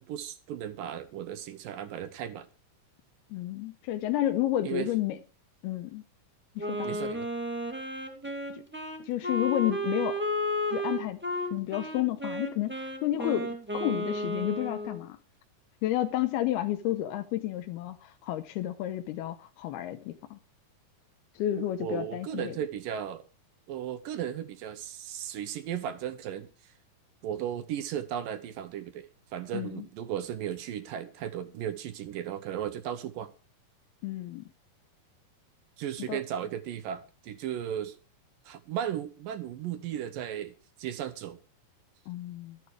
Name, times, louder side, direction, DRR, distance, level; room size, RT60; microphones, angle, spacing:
voice 1, 0.0-2.5 4.6-4.9 6.8-7.3 21.8-23.2 23.7-26.7 27.2-33.3 35.8-38.0 38.5-41.4, right 10 dB, 70° right, 2.3 m, -36 dB
voice 2, 3.3-5.2 5.6-6.0 6.6-6.9 8.5-8.6 9.0-10.2 10.7-11.2 11.5-15.2 15.8-20.4 21.4-22.6 29.5-29.8 34.0-34.4 36.1-36.2 42.1-42.6, left 13 dB, 85° left, 2.7 m, -31 dB
Wind instrument woodwind instrument, 6.6-15.0, equal, 5° right, 1.1 m, -33 dB
12.5 x 11.5 x 4.7 m
omnidirectional pair, 4.5 m